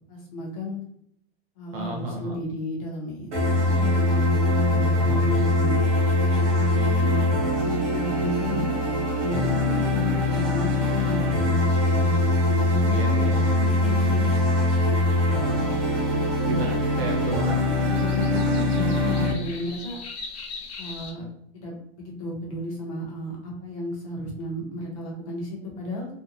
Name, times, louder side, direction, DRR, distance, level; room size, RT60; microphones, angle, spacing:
voice 1, 0.1-0.8 1.6-3.3 3.8-5.8 6.3-8.7 9.2-11.5 11.8-12.2 12.6-14.3 17.9-20.0 20.8-21.3 21.5-26.1, left 1 dB, 30° left, -2 dB, 0.7 m, -33 dB
voice 2, 1.7-2.4 4.9-5.2 12.9-13.3 15.3-15.8 16.5-17.6, right 2 dB, 60° right, 0 dB, 0.9 m, -34 dB
sound 1, 3.3-19.3, left 1 dB, 30° right, 0.9 m, -22 dB
sound 2, 15.0-21.1, left 4 dB, 70° left, 0.8 m, -42 dB
2.6 x 2.1 x 2.6 m, 0.71 s
supercardioid pair, 165°, 33 cm